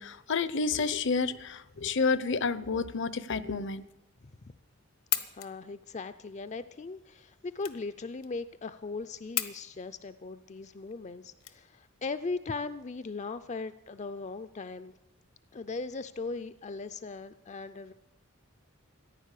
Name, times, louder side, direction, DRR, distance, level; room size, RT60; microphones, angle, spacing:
voice 1, 0.0-3.8, left 4 dB, 60° left, 16 dB, 0.8 m, -30 dB
voice 2, 4.2-4.5 5.3-14.9 15.5-17.9, left 3 dB, 35° left, 11 dB, 0.5 m, -39 dB
sound 1, 4.9-12.1, left 14 dB, 80° left, 1.2 m, -38 dB
15.0 x 10.5 x 8.3 m, 0.90 s
head